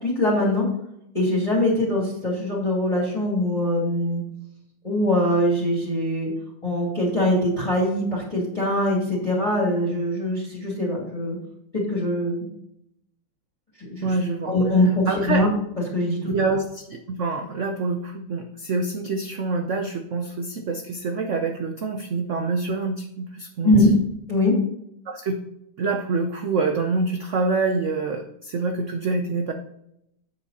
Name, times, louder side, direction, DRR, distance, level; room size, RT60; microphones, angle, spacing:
voice 1, 0.0-0.6 1.1-4.2 4.8-6.3 6.6-11.4 11.9-12.5 13.9-14.1 14.5-14.9 15.3-15.5 15.9-16.6 23.6-23.9 24.3-24.5, left 1 dB, 15° left, -6 dB, 2.4 m, -22 dB
voice 2, 14.0-14.5 15.0-15.4 16.3-23.9 25.1-25.4 25.8-29.5, right 3 dB, 75° right, 4 dB, 0.6 m, -26 dB
8.6 x 6.5 x 4.1 m, 0.77 s
omnidirectional pair, 2.3 m